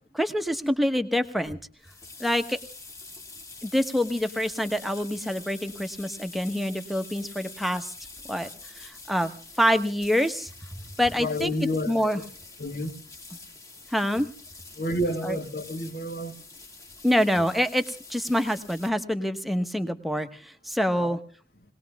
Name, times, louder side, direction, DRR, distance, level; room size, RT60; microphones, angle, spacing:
voice 1, 0.1-1.6 2.2-2.6 3.6-7.9 8.3-8.5 8.8-10.5 11.0-12.2 13.9-14.3 15.2-15.4 17.0-21.2, equal, ahead, 1.1 m, -26 dB
sound 1, 1.4-18.9, left 3 dB, 20° left, 1.9 m, -46 dB
voice 2, 11.2-12.2 12.6-12.9 14.8-16.3 20.9-21.2, left 1 dB, 60° left, 1.9 m, -30 dB
21.5 x 19.0 x 3.5 m
head